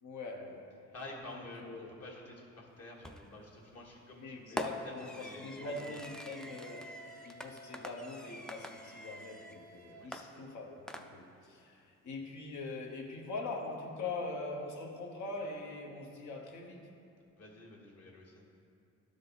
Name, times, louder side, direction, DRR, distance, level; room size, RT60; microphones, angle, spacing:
voice 1, 0.0-0.7 1.3-1.9 4.2-6.9 7.2-16.8, left 3 dB, 70° left, 1 dB, 1.2 m, -42 dB
voice 2, 0.9-6.0 9.9-10.1 17.4-18.4, left 2 dB, 55° left, -2 dB, 1.7 m, -50 dB
Fireworks, 3.0-3.4 4.6-9.6 10.1-11.5, equal, ahead, 0.4 m, -45 dB
Wind instrument woodwind instrument, 5.6-10.1, right 1 dB, 65° right, 0.6 m, -55 dB
12.0 x 5.0 x 4.1 m, 2.5 s
cardioid pair, 90°, 30 cm